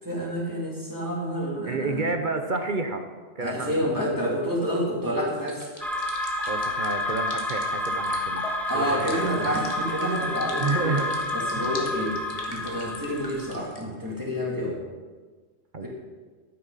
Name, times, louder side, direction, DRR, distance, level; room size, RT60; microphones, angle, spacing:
voice 1, 0.0-2.1 3.4-5.7 8.7-11.0 11.3-12.2 12.4-14.8 15.8-15.9, equal, 15° right, -5 dB, 2.8 m, -29 dB
voice 2, 1.7-3.1 3.4-4.3 6.5-8.5 8.7-9.6 10.6-11.1 11.5-11.8 15.7-15.9, right 3 dB, 45° right, 6 dB, 0.8 m, -30 dB
sound 1, 5.4-13.8, left 2 dB, 30° left, 1.5 m, -42 dB
sound 2, 5.8-13.5, left 1 dB, ahead, 0.8 m, -29 dB
12.0 x 9.7 x 4.0 m, 1.4 s
omnidirectional pair, 1.3 m